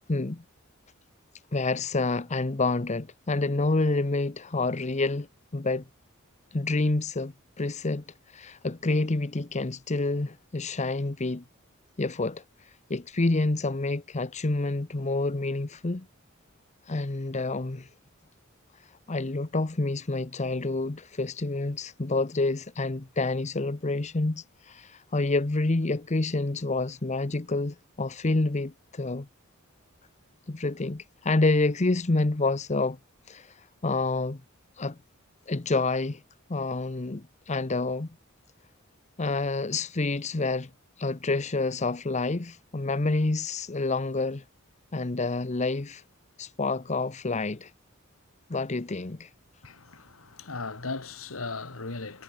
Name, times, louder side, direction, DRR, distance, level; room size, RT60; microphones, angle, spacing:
voice 1, 0.1-0.4 1.5-5.3 5.5-5.8 6.5-8.0 8.3-11.4 12.0-12.4 12.9-16.1 16.9-17.9 19.1-29.3 30.5-33.0 33.3-33.5 33.8-34.4 34.8-35.0 35.5-36.2 36.5-38.1 39.2-40.7 41.0-44.4 44.9-46.0 46.4-47.7 48.5-49.3, left 2 dB, 35° left, 0.8 m, -28 dB
voice 2, 49.6-52.2, left 3 dB, 90° left, 2.2 m, -37 dB
head